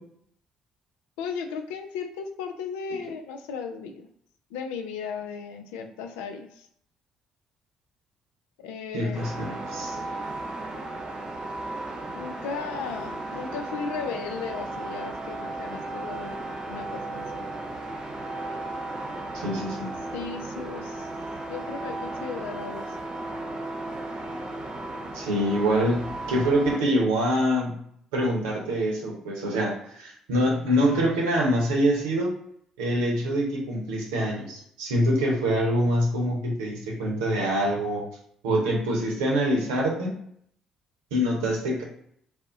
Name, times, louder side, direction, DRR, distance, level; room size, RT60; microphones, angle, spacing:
voice 1, 1.2-4.1 4.5-6.7 8.6-9.3 12.1-16.4 16.7-17.5 20.1-21.1 21.5-23.0, left 6 dB, 80° left, 6 dB, 0.3 m, -36 dB
voice 2, 8.9-10.0 19.3-19.9 25.1-27.7 28.1-32.3 32.8-38.0 38.4-40.2 41.1-41.8, equal, 85° right, -2 dB, 0.8 m, -25 dB
sound 1, 9.1-26.8, right 2 dB, 45° right, 0.7 m, -35 dB
2.6 x 2.0 x 3.6 m, 0.68 s
hypercardioid pair, 50°, 2 cm